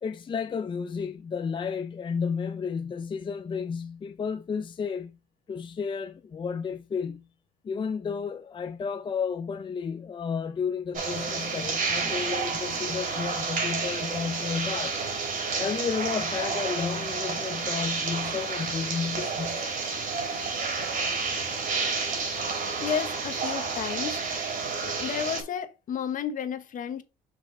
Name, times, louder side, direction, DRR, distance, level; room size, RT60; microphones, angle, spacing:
voice 1, 0.0-5.2 5.5-7.3 7.6-15.0 15.6-19.7, left 6 dB, 30° left, 0.5 m, -32 dB
sound 1, 10.9-25.4, right 4 dB, 55° right, 3.1 m, -30 dB
voice 2, 22.8-24.2 25.0-27.0, left 8 dB, 50° left, 1.1 m, -32 dB
5.8 x 5.0 x 3.8 m
cardioid pair, 110°, 17 cm